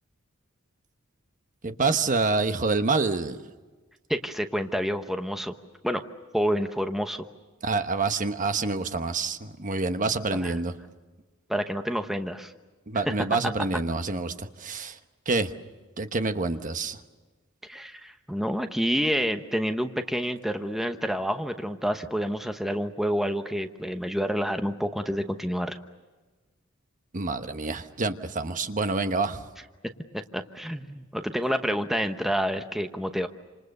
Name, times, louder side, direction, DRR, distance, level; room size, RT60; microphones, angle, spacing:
voice 1, 1.6-3.4 7.6-10.7 12.9-15.0 15.3-15.5 16.0-17.0 27.1-29.4, right 3 dB, 40° right, 8 dB, 1.1 m, -27 dB
voice 2, 4.1-5.5 5.8-6.0 6.3-7.2 10.4-10.5 11.5-12.5 13.6-13.7 17.7-25.8 30.1-33.3, equal, ahead, 6 dB, 1.0 m, -28 dB
28.0 x 27.0 x 6.7 m, 1.3 s
head